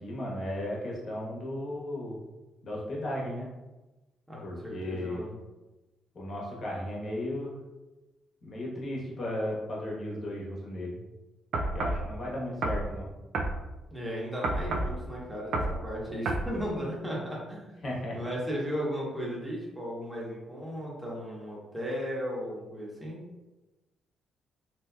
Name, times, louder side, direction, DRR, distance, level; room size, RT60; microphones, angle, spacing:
voice 1, 0.0-2.2 2.6-3.5 4.4-5.3 6.1-7.6 8.4-11.0 11.7-13.1 17.8-18.3, left 1 dB, 50° left, -4 dB, 1.1 m, -35 dB
voice 2, 4.3-5.3 13.9-17.7 18.1-23.2, equal, 10° right, -5 dB, 1.1 m, -35 dB
sound 1, 11.5-12.0 12.6-12.9 13.3-13.6 14.4-14.9 15.5-15.8 16.2-16.5, right 2 dB, 70° right, 0.4 m, -29 dB
2.9 x 2.8 x 2.3 m, 1.1 s
cardioid pair, 90°, 0 cm